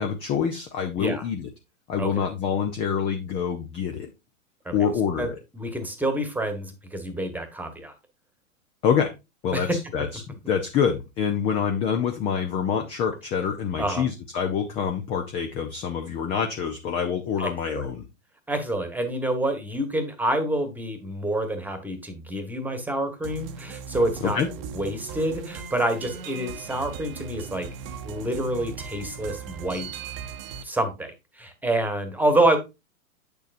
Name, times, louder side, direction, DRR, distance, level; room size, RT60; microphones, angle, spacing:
voice 1, 0.0-1.5 1.9-4.1 4.7-5.4 8.8-9.1 9.4-10.2 10.5-18.0 24.2-24.5, left 7 dB, 15° left, 5 dB, 0.4 m, -26 dB
voice 2, 5.5-7.9 9.5-9.8 13.8-14.0 17.4-17.8 18.5-24.4 24.7-27.7 28.0-29.9 30.6-31.1 31.4-32.6, right 1 dB, 5° right, 8 dB, 1.2 m, -27 dB
sound 1, 23.2-30.6, right 6 dB, 45° right, 0.9 m, -38 dB
8.1 x 6.7 x 2.5 m, 0.24 s
hypercardioid pair, 110°, 41 cm